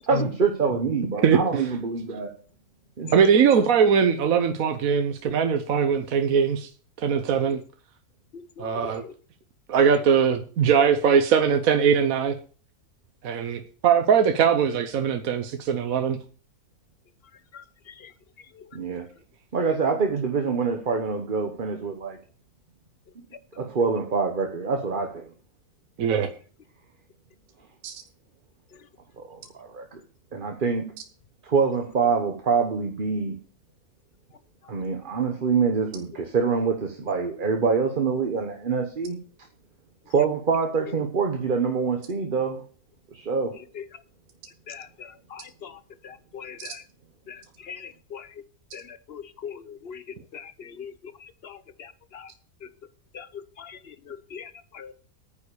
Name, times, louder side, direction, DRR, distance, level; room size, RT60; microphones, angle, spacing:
voice 1, 0.1-2.3 3.0-3.1 18.7-19.1 19.5-22.2 23.6-25.3 29.2-30.0 30.3-30.9 31.4-33.4 34.7-39.2 40.1-42.6 43.1-43.5, right 5 dB, 35° right, 1.2 m, -25 dB
voice 2, 3.1-6.7 7.0-7.6 8.6-9.0 9.7-12.4 13.2-16.2 26.0-26.3 27.8-28.0, right 7 dB, 70° right, 1.3 m, -21 dB
voice 3, 49.1-49.5 49.9-50.0 50.3-50.4 50.8-50.9 53.1-53.2 54.3-54.4 54.8-54.9, left 7 dB, 50° left, 0.9 m, -38 dB
9.4 x 7.3 x 6.9 m
omnidirectional pair, 1.6 m